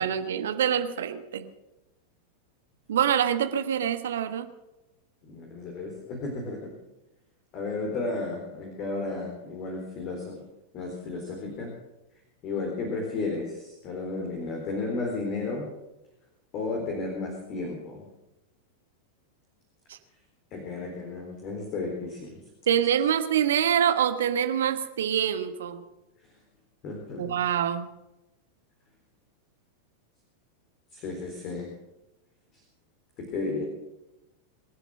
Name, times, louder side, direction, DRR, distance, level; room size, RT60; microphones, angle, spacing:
voice 1, 0.0-1.5 2.9-4.5 19.9-20.0 22.7-25.8 27.2-27.9, right 9 dB, 60° right, 9 dB, 1.3 m, -25 dB
voice 2, 5.2-6.7 7.5-10.3 10.7-11.7 12.4-15.7 16.5-18.0 20.5-22.4 26.8-27.4 30.9-31.7 33.3-33.6, left 3 dB, 40° left, 1 dB, 3.9 m, -33 dB
24.5 x 8.2 x 6.4 m, 0.97 s
figure-of-eight pair, 90°, 0 cm